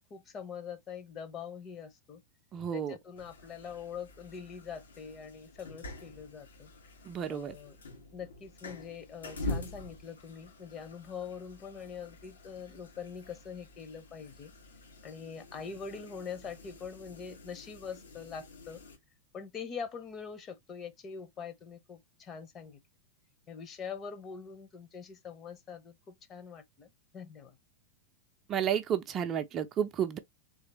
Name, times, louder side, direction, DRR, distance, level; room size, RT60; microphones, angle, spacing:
voice 1, 0.0-2.2 2.7-6.7 7.3-7.8 8.1-14.5 15.0-18.8 19.3-22.8 23.5-26.9 27.1-27.6, left 6 dB, 30° left, 0.9 m, -43 dB
voice 2, 2.5-3.0 7.1-7.5 28.5-30.2, right 9 dB, 30° right, 0.6 m, -31 dB
sound 1, 3.2-19.0, left 2 dB, 70° left, 1.3 m, -46 dB
3.9 x 3.2 x 2.9 m
figure-of-eight pair, 90°, 0 cm